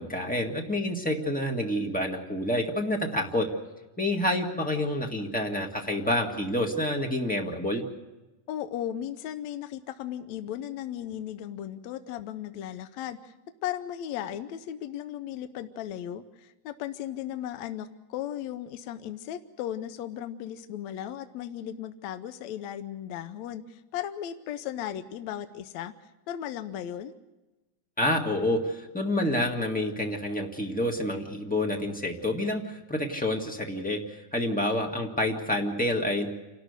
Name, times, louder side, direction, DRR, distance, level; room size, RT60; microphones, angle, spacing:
voice 1, 0.0-3.5 4.0-7.8 28.0-36.3, left 1 dB, 5° left, 1 dB, 0.6 m, -28 dB
voice 2, 8.5-13.3 13.6-25.9 26.3-27.1, left 11 dB, 70° left, 10 dB, 1.8 m, -36 dB
28.5 x 13.0 x 8.1 m, 1.1 s
omnidirectional pair, 3.8 m